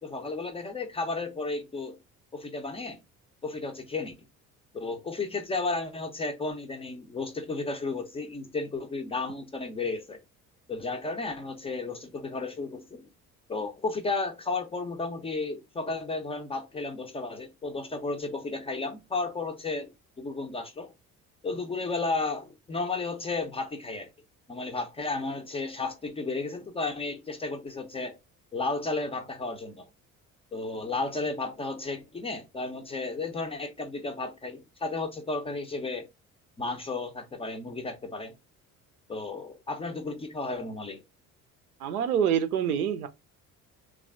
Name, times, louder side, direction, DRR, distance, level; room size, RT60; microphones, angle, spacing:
voice 1, 0.0-2.0 2.3-3.0 3.4-4.1 4.7-10.2 10.7-13.1 13.5-19.9 20.2-20.9 21.4-24.1 24.5-28.2 28.5-29.9 30.5-36.1 36.6-38.3 39.1-41.0, left 3 dB, 15° left, 0.4 m, -33 dB
voice 2, 41.8-43.1, right 8 dB, 80° right, 0.5 m, -26 dB
3.1 x 2.3 x 2.3 m
figure-of-eight pair, 50°, 44 cm